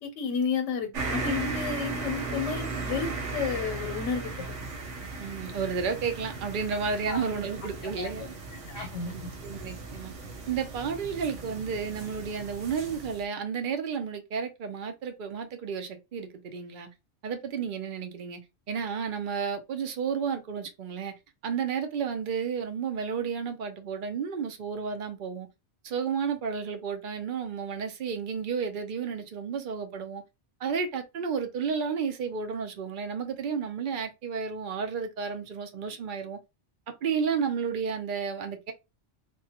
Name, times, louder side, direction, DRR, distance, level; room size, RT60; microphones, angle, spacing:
voice 1, 0.0-4.5 7.1-7.3 7.8-8.1 8.7-9.3, left 6 dB, 85° left, 1.0 m, -32 dB
sound 1, 0.9-13.2, right 3 dB, 80° right, 1.2 m, -36 dB
voice 2, 5.2-8.3 8.8-8.9 9.1-10.1 10.5-16.9 17.2-18.4 18.7-21.1 21.4-25.5 25.8-30.2 30.6-36.4 36.9-38.7, right 6 dB, 50° right, 0.7 m, -32 dB
3.4 x 2.2 x 2.8 m
omnidirectional pair, 1.2 m